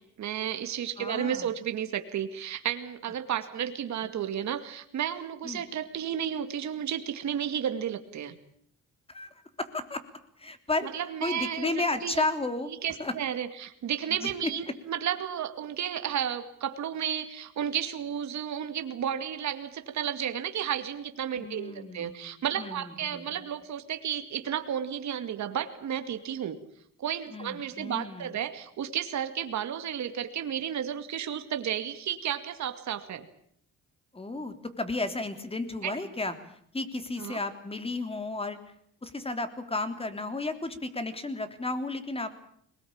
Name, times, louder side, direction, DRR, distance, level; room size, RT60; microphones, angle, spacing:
voice 1, 0.2-8.3 10.9-12.2 12.8-26.6 27.0-33.3 35.8-36.0 37.2-37.4, right 9 dB, 65° right, 8 dB, 2.3 m, -32 dB
voice 2, 1.0-1.5 5.4-5.6 9.1-9.3 9.6-10.0 10.4-10.9 11.2-12.7 13.0-13.1 14.1-14.3 21.4-23.5 27.3-28.3 34.1-38.6 39.0-42.4, left 2 dB, 20° left, 8 dB, 3.3 m, -33 dB
22.5 x 20.5 x 8.7 m, 0.68 s
cardioid pair, 90°, 30 cm